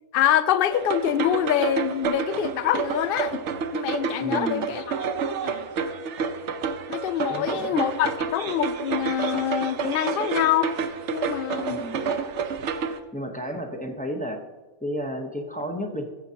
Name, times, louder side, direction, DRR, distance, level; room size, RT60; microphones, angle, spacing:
voice 1, 0.1-3.4 3.7-4.9 5.4-5.7 6.9-10.7 11.1-11.8, left 11 dB, 70° left, 13 dB, 0.5 m, -25 dB
sound 1, 0.7-13.0, right 5 dB, 60° right, 1.0 m, -29 dB
voice 2, 4.2-4.7 7.3-7.7 11.7-12.1 13.1-14.4 14.8-16.1, equal, 10° left, 3 dB, 0.7 m, -32 dB
14.5 x 7.3 x 2.8 m, 1.2 s
omnidirectional pair, 1.5 m